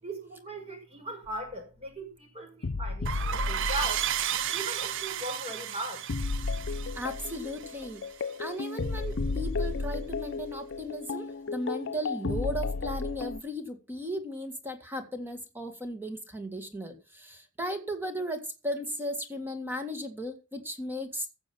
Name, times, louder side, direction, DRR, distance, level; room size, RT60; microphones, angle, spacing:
voice 1, 0.0-4.0 4.5-6.1, right 1 dB, 30° right, 5.5 m, -38 dB
sound 1, 1.3-1.4 2.6-4.4 6.1-13.4, left 3 dB, 60° left, 0.6 m, -33 dB
sound 2, 3.0-8.4, right 10 dB, 65° right, 0.6 m, -33 dB
voice 2, 6.9-8.0 8.4-21.3, equal, 10° right, 2.0 m, -36 dB
15.5 x 7.1 x 5.9 m
head